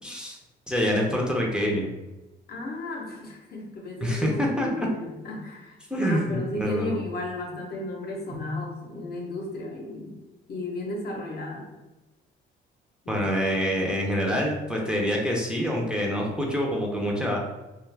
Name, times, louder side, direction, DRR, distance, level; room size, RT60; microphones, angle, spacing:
voice 1, 0.0-0.4 0.7-1.9 4.0-4.9 5.9-7.0 8.3-8.4 13.1-17.4, equal, 5° right, -2 dB, 0.5 m, -26 dB
voice 2, 2.5-10.1 10.5-11.7 13.0-13.2, left 1 dB, 55° left, 0 dB, 0.7 m, -34 dB
2.4 x 2.3 x 3.2 m, 1.1 s
cardioid pair, 90°, 20 cm